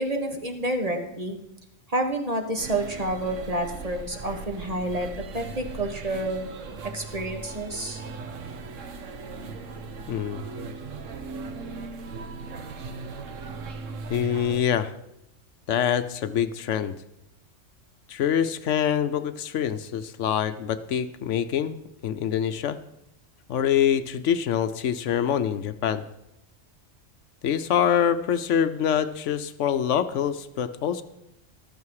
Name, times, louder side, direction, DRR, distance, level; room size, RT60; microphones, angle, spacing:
voice 1, 0.0-1.4 1.9-5.1 5.3-6.5 6.9-8.0, right 1 dB, 30° right, 4 dB, 1.4 m, -29 dB
sound 1, 2.6-14.6, right 4 dB, 85° right, 1.3 m, -38 dB
voice 2, 10.1-10.4 14.1-14.9 15.7-17.0 18.1-22.8 23.5-26.0 27.4-31.0, left 9 dB, 75° left, 11 dB, 1.0 m, -25 dB
14.0 x 12.5 x 4.8 m, 0.84 s
omnidirectional pair, 1.3 m